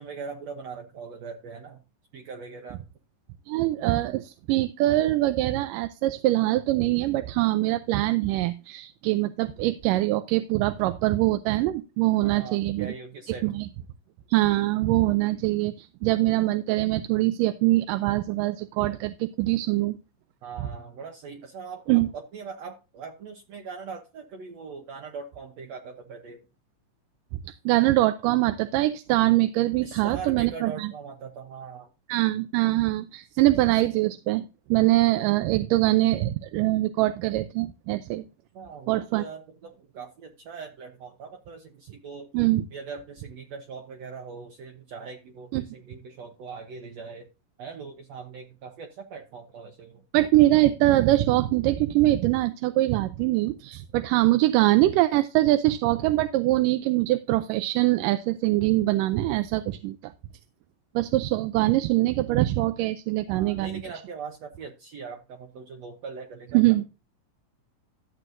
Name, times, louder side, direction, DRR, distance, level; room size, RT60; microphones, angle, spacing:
voice 1, 0.0-1.8 2.1-2.8 12.2-13.5 20.4-26.4 29.8-31.9 38.5-42.3 42.7-47.3 47.6-50.0 63.3-66.8, right 5 dB, 65° right, 3 dB, 2.0 m, -41 dB
voice 2, 3.5-12.9 13.4-13.7 14.3-20.0 21.9-22.1 27.7-30.9 32.1-38.3 38.9-39.2 42.3-42.6 45.5-45.7 50.1-60.1 61.0-63.8 66.5-66.8, right 17 dB, 80° right, 10 dB, 2.2 m, -23 dB
13.5 x 7.9 x 2.6 m, 0.29 s
omnidirectional pair, 3.9 m